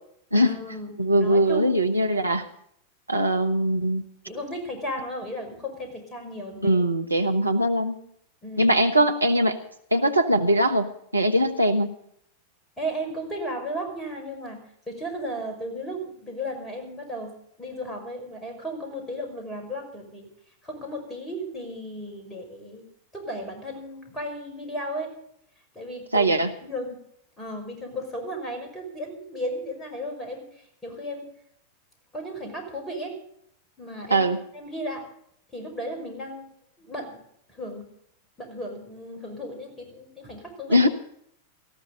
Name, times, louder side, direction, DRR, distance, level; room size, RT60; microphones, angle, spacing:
voice 1, 0.3-1.8 2.1-2.2 4.3-6.8 8.4-8.8 12.8-20.3 20.6-22.8 23.1-25.1 25.7-26.4 26.6-27.0 27.4-31.3 32.1-33.2 33.8-34.3 34.5-35.1 35.5-36.5 36.8-37.2 37.5-37.9 38.4-40.9, equal, 10° left, 2 dB, 5.6 m, -35 dB
voice 2, 1.0-2.5 3.1-4.0 6.6-8.0 8.6-9.6 9.9-12.0 26.1-26.5 34.1-34.4 40.7-40.9, right 1 dB, 85° right, 5 dB, 1.2 m, -21 dB
18.5 x 15.0 x 3.9 m, 0.70 s
figure-of-eight pair, 90°, 0 cm